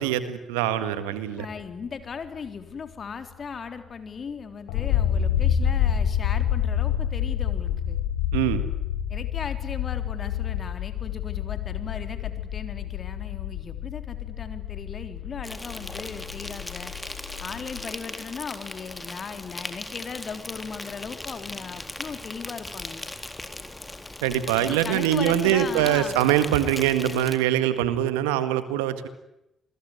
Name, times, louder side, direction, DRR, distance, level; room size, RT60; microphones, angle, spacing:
voice 1, 0.0-1.5 8.3-8.6 24.2-29.1, right 11 dB, 85° right, 12 dB, 1.9 m, -23 dB
voice 2, 1.4-8.0 9.1-16.9 17.4-23.0 24.6-26.2, left 5 dB, 50° left, 8 dB, 3.7 m, -37 dB
sound 1, 4.7-17.9, left 9 dB, 80° left, 5.0 m, -28 dB
Insect, 15.4-27.4, left 2 dB, 20° left, 3.9 m, -38 dB
28.0 x 22.0 x 9.7 m, 0.89 s
hypercardioid pair, 45°, 0 cm